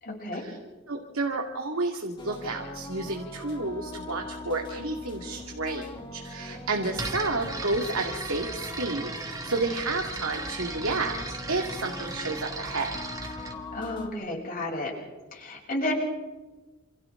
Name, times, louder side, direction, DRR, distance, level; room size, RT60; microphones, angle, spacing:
voice 1, 0.0-0.4 13.7-14.9 15.3-15.9, left 1 dB, 45° left, -2 dB, 7.9 m, -32 dB
voice 2, 0.9-12.9, right 3 dB, 80° right, 2 dB, 2.3 m, -31 dB
sound 1, 2.2-14.1, left 1 dB, 25° left, 3.0 m, -41 dB
sound 2, 6.9-13.6, right 2 dB, 15° right, 2.2 m, -36 dB
28.5 x 28.5 x 3.9 m, 1.2 s
head